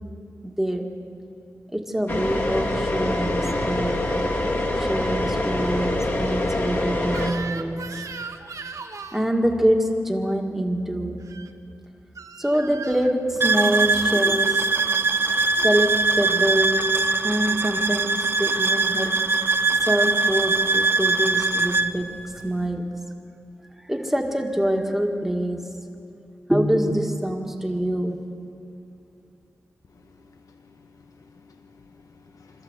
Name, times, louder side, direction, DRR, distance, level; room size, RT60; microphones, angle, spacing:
voice 1, 0.4-0.9 1.7-4.0 4.8-7.9 9.1-11.2 12.4-14.6 15.6-19.2 19.8-22.1 22.4-22.9 23.9-25.7 26.5-28.2, equal, 5° right, 2 dB, 1.8 m, -25 dB
sound 1, 2.1-7.3, left 1 dB, 45° left, 2.5 m, -25 dB
Crying sobbing / Screech, 7.1-9.3 11.2-11.5 12.2-13.1, right 5 dB, 65° right, 1.1 m, -37 dB
sound 2, 13.4-21.9, right 3 dB, 40° right, 0.9 m, -22 dB
voice 2, 30.2-32.6, left 4 dB, 75° left, 4 dB, 1.1 m, -53 dB
26.0 x 14.0 x 8.1 m, 2.7 s
wide cardioid pair, 135°, 6 cm